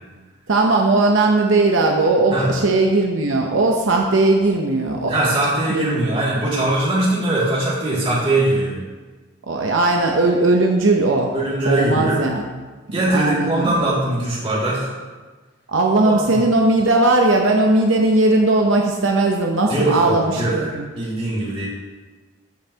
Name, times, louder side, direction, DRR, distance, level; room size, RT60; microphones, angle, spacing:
voice 1, 0.5-5.1 5.7-6.2 9.5-11.3 11.6-12.4 13.1-13.8 15.7-20.9, right 2 dB, 75° right, 1 dB, 0.7 m, -18 dB
voice 2, 5.1-8.8 11.3-12.2 12.9-14.9 16.0-16.4 19.7-20.7 21.0-21.7, right 2 dB, 25° right, -7 dB, 2.4 m, -21 dB
13.0 x 5.5 x 2.9 m, 1.3 s
head